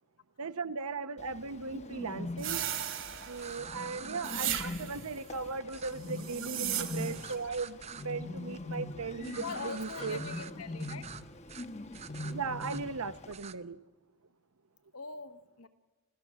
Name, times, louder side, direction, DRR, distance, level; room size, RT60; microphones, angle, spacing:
voice 1, 0.4-2.6 3.3-10.2 12.3-13.8, right 4 dB, 75° right, 0.9 m, -38 dB
Bird, 1.2-13.3, left 2 dB, 30° left, 1.0 m, -42 dB
sound 1, 2.4-3.6 4.2-5.1 6.1-7.3, right 12 dB, 60° right, 2.1 m, -36 dB
sound 2, 3.3-4.6 5.7-5.9 7.1-8.0 9.2-10.5 10.8-11.2 11.5-11.7 11.9-12.8 13.3-13.5, right 7 dB, 30° right, 0.6 m, -46 dB
voice 2, 9.3-11.0 14.9-15.7, left 5 dB, 80° left, 1.4 m, -42 dB
28.5 x 16.0 x 7.6 m
head